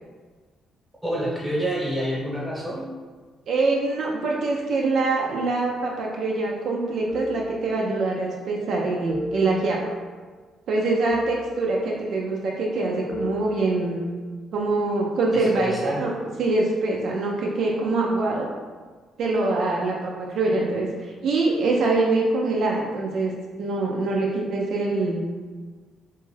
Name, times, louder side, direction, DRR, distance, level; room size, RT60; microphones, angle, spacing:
voice 1, 1.0-2.8 15.3-16.1, equal, 10° right, -5 dB, 0.9 m, -28 dB
voice 2, 3.5-9.8 10.7-14.0 14.5-16.1 16.4-18.5 19.2-20.9 21.2-23.3 23.6-25.2, right 3 dB, 70° right, -2 dB, 0.4 m, -24 dB
sound 1, 7.1-8.3 9.1-10.3 11.1-12.3 13.1-14.3, left 2 dB, 40° left, 0.7 m, -35 dB
2.5 x 2.3 x 3.2 m, 1.4 s
cardioid pair, 90°, 0 cm